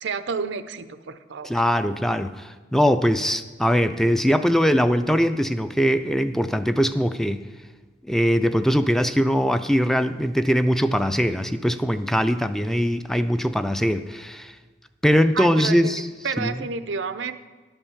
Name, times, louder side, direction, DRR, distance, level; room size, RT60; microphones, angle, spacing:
voice 1, 0.0-1.6 15.3-15.9 16.2-17.3, right 5 dB, 85° right, 12 dB, 0.6 m, -30 dB
voice 2, 1.4-7.5 8.1-14.5 15.0-16.1 16.4-16.5, equal, ahead, 10 dB, 0.3 m, -21 dB
11.0 x 5.5 x 7.0 m, 1.4 s
head